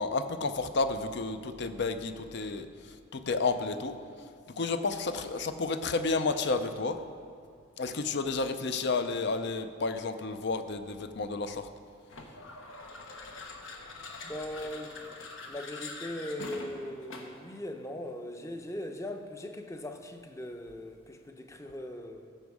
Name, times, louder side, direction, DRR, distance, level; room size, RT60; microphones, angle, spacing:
voice 1, 0.0-4.0 4.5-7.0 7.8-11.7, left 3 dB, 60° left, 9 dB, 0.6 m, -31 dB
sound 1, 12.1-17.5, left 3 dB, 85° left, 1.1 m, -44 dB
voice 2, 14.2-15.0 15.4-22.3, left 1 dB, 15° left, 5 dB, 0.6 m, -40 dB
14.5 x 6.2 x 4.8 m, 2.2 s
head